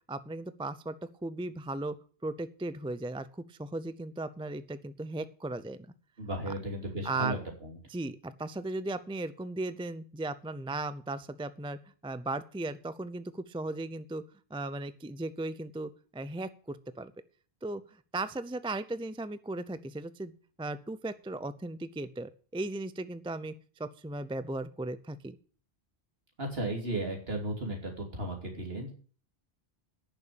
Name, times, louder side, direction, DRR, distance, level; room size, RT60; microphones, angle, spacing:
voice 1, 0.1-1.0 1.2-5.8 6.5-6.6 7.0-7.4 7.9-17.1 17.6-20.3 20.6-23.5 23.8-25.4, right 2 dB, 5° right, 14 dB, 0.4 m, -37 dB
voice 2, 6.2-7.8 26.4-28.9, right 1 dB, 65° right, 1 dB, 3.3 m, -35 dB
10.0 x 7.0 x 8.7 m, 0.42 s
omnidirectional pair, 1.1 m